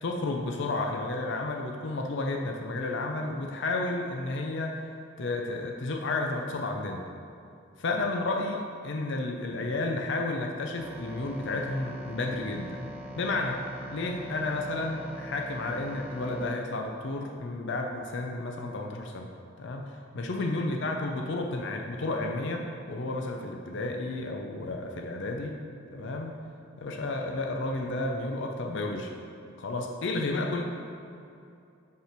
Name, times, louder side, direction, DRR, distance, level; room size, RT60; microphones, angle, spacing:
voice 1, 0.0-4.8 5.2-7.1 7.8-13.6 13.9-19.3 19.6-25.6 25.9-26.4 26.8-29.1 29.6-30.6, left 2 dB, 60° left, 2 dB, 0.5 m, -32 dB
sound 1, 10.8-16.5, equal, 5° right, 0.5 m, -42 dB
5.4 x 5.0 x 5.9 m, 2.6 s
head